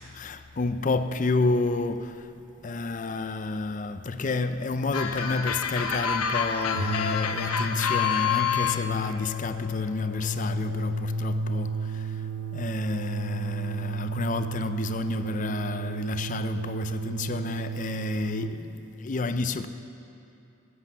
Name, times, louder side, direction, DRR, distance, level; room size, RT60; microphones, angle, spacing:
voice 1, 0.1-2.3 2.6-19.7, left 3 dB, 35° left, 0.4 m, -30 dB
sound 1, 4.9-8.8, left 7 dB, 85° left, 0.8 m, -27 dB
sound 2, 6.6-18.6, right 1 dB, 85° right, 0.8 m, -32 dB
16.5 x 8.0 x 7.1 m
head